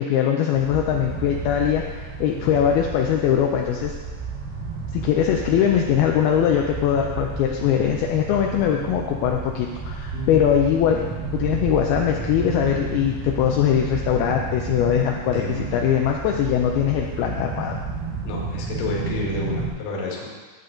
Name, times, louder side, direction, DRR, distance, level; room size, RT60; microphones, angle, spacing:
voice 1, 0.0-3.9 4.9-11.0 11.3-17.8, left 9 dB, 80° left, 1 dB, 2.2 m, -21 dB
sound 1, 0.5-19.7, right 4 dB, 85° right, 3.7 m, -32 dB
sound 2, 10.1-19.5, right 3 dB, 35° right, 2.0 m, -43 dB
voice 2, 15.3-15.9 18.2-20.3, left 2 dB, 55° left, -2 dB, 2.3 m, -30 dB
11.0 x 8.2 x 3.8 m, 1.4 s
omnidirectional pair, 5.1 m